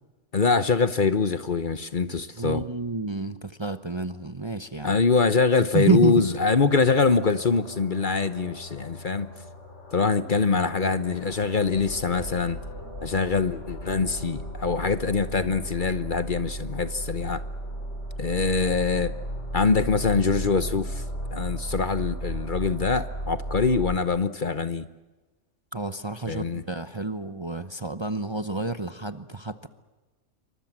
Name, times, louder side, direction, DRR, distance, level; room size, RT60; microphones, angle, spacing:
voice 1, 0.3-2.7 4.8-9.3 9.9-12.6 13.0-17.4 18.2-19.1 19.5-21.0 21.3-24.9 26.3-26.6, left 4 dB, 45° left, 1.1 m, -24 dB
voice 2, 2.4-5.0 5.7-6.2 25.7-29.7, right 3 dB, 25° right, 0.9 m, -29 dB
sound 1, 6.0-24.0, equal, 65° left, 4.2 m, -36 dB
27.5 x 24.5 x 7.5 m
omnidirectional pair, 1.3 m